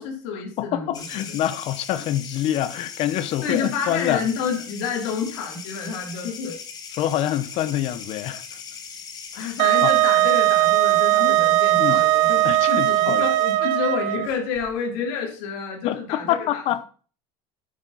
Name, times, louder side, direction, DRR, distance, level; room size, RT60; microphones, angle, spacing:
voice 1, 0.0-1.4 3.4-6.6 9.3-16.8, left 6 dB, 75° left, 3.0 m, -29 dB
voice 2, 0.6-4.2 7.0-8.4 9.3-9.5 9.8-9.9 11.8-12.0 12.4-13.2 15.8-16.8, left 12 dB, 45° left, 0.8 m, -26 dB
sound 1, 0.9-13.5, left 6 dB, 25° left, 1.7 m, -40 dB
Wind instrument woodwind instrument, 9.6-14.3, right 16 dB, 55° right, 0.7 m, -19 dB
9.9 x 8.7 x 4.0 m
cardioid pair, 165°, 14 cm